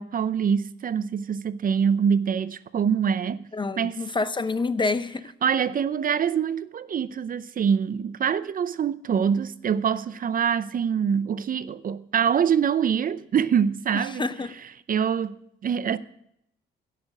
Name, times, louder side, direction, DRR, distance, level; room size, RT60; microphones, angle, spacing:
voice 1, 0.0-3.5 3.8-4.0 5.4-14.3 14.9-15.3 15.6-16.0, right 7 dB, 45° right, 0.6 m, -24 dB
voice 2, 3.5-5.2 14.0-14.6, left 3 dB, 25° left, 0.7 m, -27 dB
16.0 x 6.7 x 6.2 m
cardioid pair, 90°, 20 cm